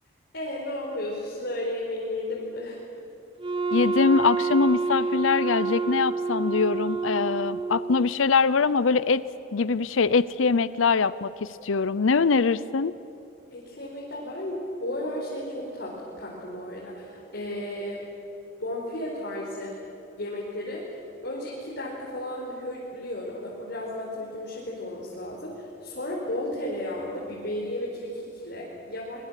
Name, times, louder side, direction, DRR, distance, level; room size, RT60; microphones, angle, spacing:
voice 1, 0.3-2.8 13.5-18.0 18.6-19.8 20.2-20.8 21.2-29.2, left 1 dB, 60° left, -5 dB, 4.8 m, -34 dB
Wind instrument woodwind instrument, 3.4-8.1, right 4 dB, 25° right, 0.7 m, -28 dB
voice 2, 3.7-9.2 9.5-11.3 11.6-12.9, left 4 dB, 85° left, 17 dB, 0.6 m, -23 dB
25.0 x 23.0 x 8.3 m, 2.9 s
head